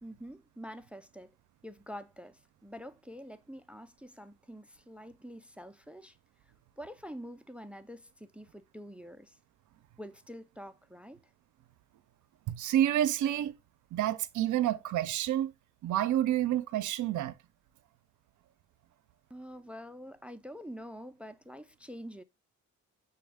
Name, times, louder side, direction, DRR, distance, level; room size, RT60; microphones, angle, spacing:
voice 1, 0.0-1.3 1.6-6.2 6.8-9.4 10.0-11.2 19.3-22.2, equal, 5° right, 0.3 m, -46 dB
voice 2, 12.5-13.5 13.9-15.5 15.8-17.3, right 12 dB, 75° right, 0.5 m, -29 dB
6.7 x 2.3 x 3.4 m
cardioid pair, 85°, 31 cm